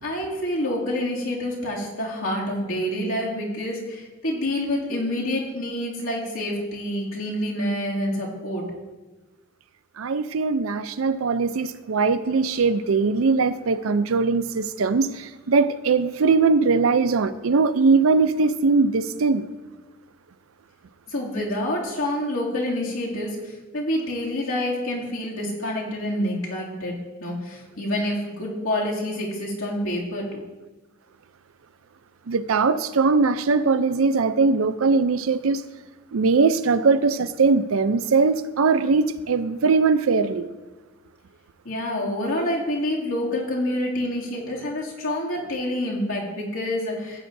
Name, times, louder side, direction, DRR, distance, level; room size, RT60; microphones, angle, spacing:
voice 1, 0.0-8.6 21.1-30.4 41.6-47.3, left 1 dB, 85° left, 2.5 m, -27 dB
voice 2, 10.0-19.5 32.3-35.6 36.1-40.5, right 4 dB, 85° right, 0.5 m, -21 dB
15.5 x 8.7 x 2.7 m
head